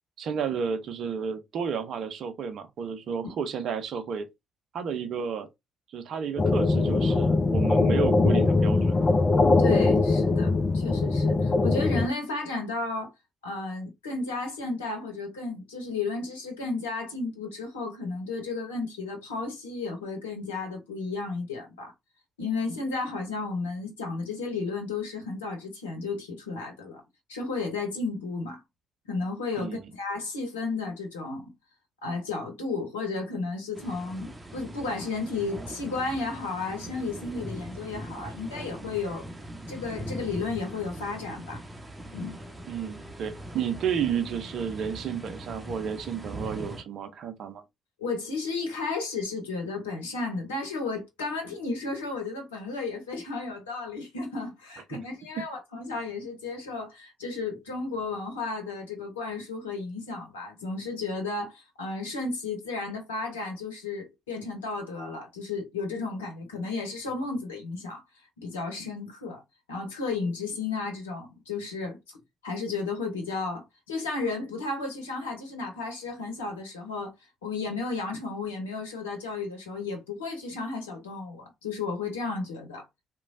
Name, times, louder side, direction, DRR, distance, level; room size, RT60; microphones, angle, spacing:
voice 1, 0.2-4.3 4.7-5.5 5.9-9.0 29.6-29.9 42.7-47.6 54.9-55.0 55.4-55.5, right 7 dB, 60° right, 0.6 m, -32 dB
sound 1, 6.4-12.1, left 3 dB, 40° left, 0.5 m, -22 dB
voice 2, 9.6-13.1 13.4-21.9 22.4-27.0 27.3-28.6 29.1-31.5 32.0-39.2 39.7-41.6 42.1-42.4 48.0-68.0 68.4-69.4 69.7-72.2 72.4-77.1 77.4-82.8, left 3 dB, 85° left, 0.8 m, -33 dB
sound 2, 33.8-46.8, right 1 dB, 20° right, 0.8 m, -41 dB
2.9 x 2.2 x 2.6 m
hypercardioid pair, 45°, 0 cm